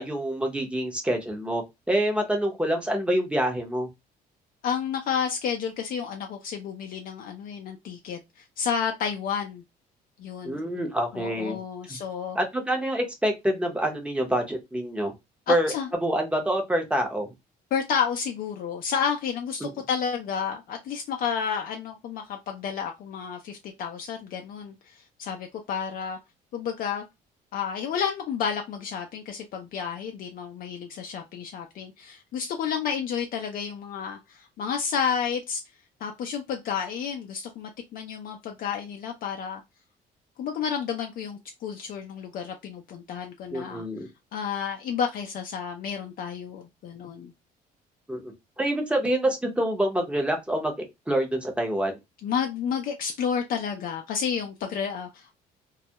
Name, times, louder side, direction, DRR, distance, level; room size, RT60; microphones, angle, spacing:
voice 1, 0.0-3.9 10.4-11.6 11.9-12.0 12.3-15.1 15.5-15.7 16.0-17.3 19.6-19.7 43.5-44.1 48.1-50.7 51.1-52.0, right 1 dB, 5° right, 0.7 m, -26 dB
voice 2, 4.6-9.6 10.2-10.6 11.1-12.4 15.5-15.9 17.7-26.2 26.5-27.0 27.5-35.6 36.0-39.6 40.4-43.8 44.3-47.3 52.2-55.3, left 7 dB, 60° left, 0.4 m, -31 dB
2.2 x 2.0 x 2.7 m
cardioid pair, 110°, 17 cm